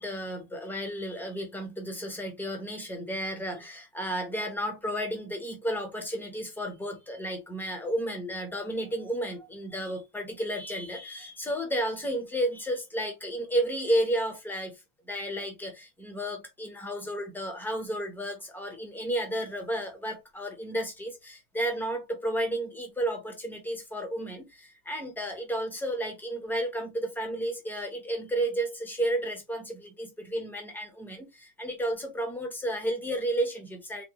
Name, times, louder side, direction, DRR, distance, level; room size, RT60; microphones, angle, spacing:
voice 1, 0.0-34.0, right 1 dB, 5° left, 0.7 m, -32 dB
3.6 x 2.3 x 2.8 m
cardioid pair, 150°, 49 cm